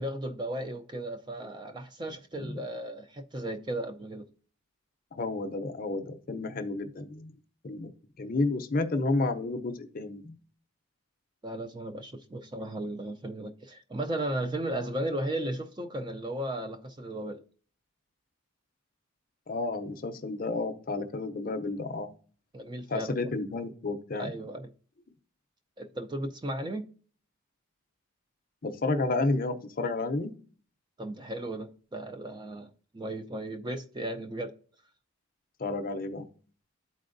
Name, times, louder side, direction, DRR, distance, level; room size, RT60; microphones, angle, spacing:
voice 1, 0.0-4.3 11.4-17.4 22.5-23.2 24.1-24.7 25.8-26.9 31.0-34.5, right 1 dB, 20° right, 0.4 m, -35 dB
voice 2, 5.1-7.3 7.6-7.9 8.2-10.3 19.5-22.1 22.9-24.3 28.6-30.3 35.6-36.2, left 2 dB, 40° left, 0.5 m, -31 dB
11.5 x 4.3 x 2.6 m
head